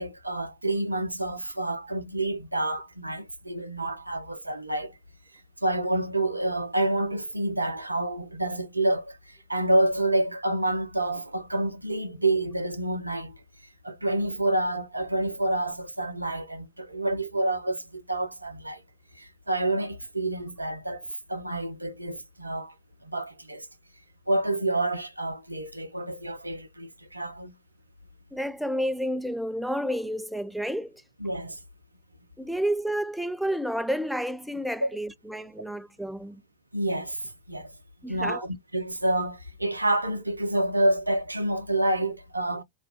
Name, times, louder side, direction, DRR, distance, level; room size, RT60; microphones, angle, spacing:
voice 1, 0.0-4.9 5.6-13.4 13.8-18.8 19.1-21.0 21.3-22.7 23.0-23.7 24.3-27.5 31.2-31.6 34.8-34.9 36.7-37.7 38.1-42.6, right 1 dB, 85° right, 0.5 m, -28 dB
voice 2, 28.3-31.0 32.4-36.4 38.0-38.5, equal, ahead, 0.3 m, -30 dB
2.4 x 2.3 x 3.3 m
figure-of-eight pair, 90°, 0 cm